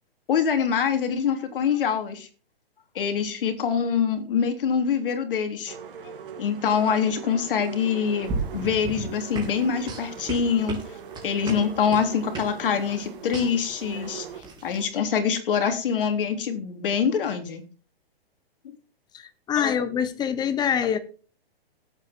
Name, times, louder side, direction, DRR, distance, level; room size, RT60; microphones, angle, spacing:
voice 1, 0.3-2.3 3.0-5.7 6.4-10.8 11.2-14.3 14.6-17.6 19.6-19.7, left 7 dB, 60° left, 3.5 m, -25 dB
sound 1, 5.7-14.4, right 7 dB, 60° right, 3.2 m, -41 dB
sound 2, 8.2-14.9, right 3 dB, 15° right, 4.0 m, -35 dB
voice 2, 19.1-21.0, left 8 dB, 15° left, 1.1 m, -25 dB
17.0 x 8.9 x 4.5 m
hypercardioid pair, 150°, 31 cm